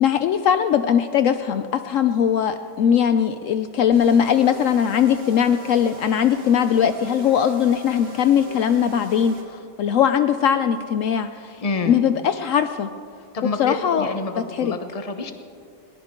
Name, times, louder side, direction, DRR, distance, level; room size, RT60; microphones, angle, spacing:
voice 1, 0.0-11.6 11.9-12.9 13.6-14.1 14.5-14.7, left 8 dB, 85° left, 10 dB, 0.7 m, -20 dB
sound 1, 3.9-9.4, right 1 dB, 50° right, 1.9 m, -42 dB
voice 2, 11.6-12.0 13.3-15.3, left 3 dB, 30° left, 7 dB, 0.7 m, -28 dB
21.0 x 18.5 x 3.7 m, 2.4 s
omnidirectional pair, 2.0 m